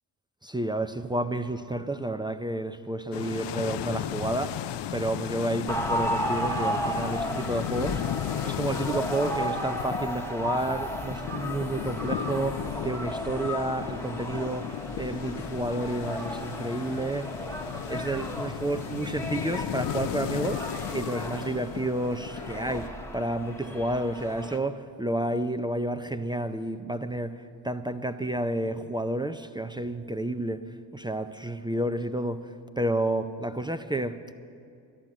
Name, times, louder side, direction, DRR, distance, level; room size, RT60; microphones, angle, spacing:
voice 1, 0.4-4.6 4.9-8.0 8.4-17.5 17.9-30.6 30.9-32.5 32.8-34.3, right 1 dB, 10° right, 0.5 m, -30 dB
sound 1, 3.1-22.9, left 12 dB, 60° left, 0.5 m, -35 dB
sound 2, 5.7-24.6, equal, 5° left, 1.1 m, -34 dB
sound 3, 9.8-21.4, left 3 dB, 85° left, 3.5 m, -60 dB
12.0 x 11.5 x 7.5 m
supercardioid pair, 65°, 48 cm